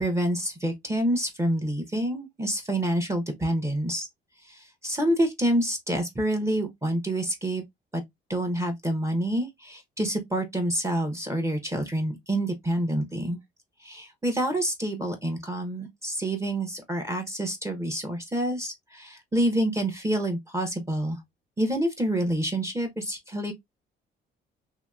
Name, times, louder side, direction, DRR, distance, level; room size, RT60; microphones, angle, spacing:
voice 1, 0.0-4.1 4.4-7.6 7.9-8.0 8.3-13.4 13.8-21.2 21.6-23.5, right 1 dB, 15° right, 0.8 m, -27 dB
2.8 x 2.6 x 2.3 m
cardioid pair, 90°, 20 cm